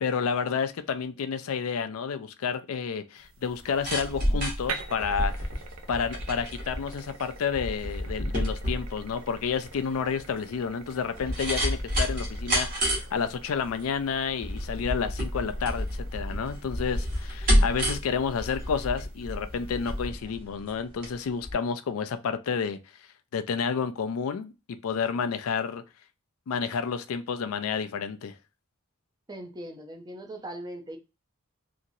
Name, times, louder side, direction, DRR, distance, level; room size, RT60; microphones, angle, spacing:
voice 1, 0.0-5.5 5.9-22.8 23.3-24.5 24.8-25.8 26.5-28.3, left 6 dB, 85° left, 0.4 m, -30 dB
sound 1, 3.2-20.1, right 5 dB, 70° right, 0.5 m, -47 dB
sound 2, 3.5-21.1 21.4-21.5, equal, 45° right, 1.1 m, -30 dB
voice 2, 29.3-31.0, right 1 dB, 20° right, 0.5 m, -40 dB
2.9 x 2.5 x 2.6 m
head